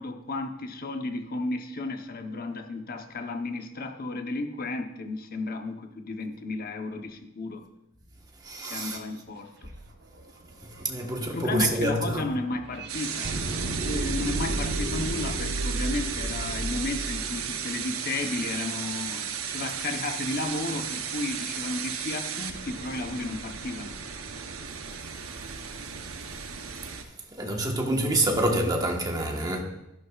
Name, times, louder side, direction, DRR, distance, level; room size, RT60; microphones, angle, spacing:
voice 1, 0.0-7.6 8.6-9.5 11.3-13.3 13.8-24.0, left 2 dB, 45° left, 1.0 m, -33 dB
voice 2, 8.4-9.0 10.6-12.3 27.3-29.6, right 1 dB, 20° right, 1.3 m, -27 dB
sound 1, 9.8-9.9 10.2-18.4, right 1 dB, 55° right, 1.2 m, -33 dB
sound 2, 12.9-27.0, right 7 dB, 75° right, 0.9 m, -35 dB
13.0 x 11.5 x 2.5 m
head